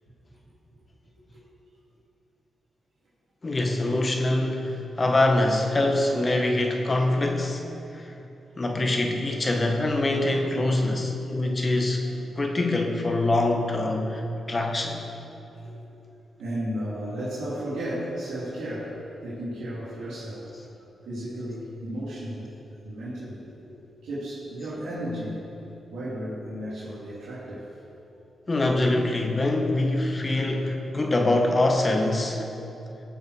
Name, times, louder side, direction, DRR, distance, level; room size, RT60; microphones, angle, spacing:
voice 1, 3.4-7.7 7.9-8.1 8.6-12.1 12.4-15.0 28.5-32.5, left 2 dB, 35° left, 2 dB, 1.7 m, -24 dB
voice 2, 8.4-8.8 12.0-12.4 15.6-15.8 16.4-20.5 21.0-22.5 22.8-25.4 25.9-27.7, equal, 85° right, -10 dB, 2.7 m, -34 dB
17.5 x 7.2 x 4.8 m, 2.9 s
cardioid pair, 65°, 0 cm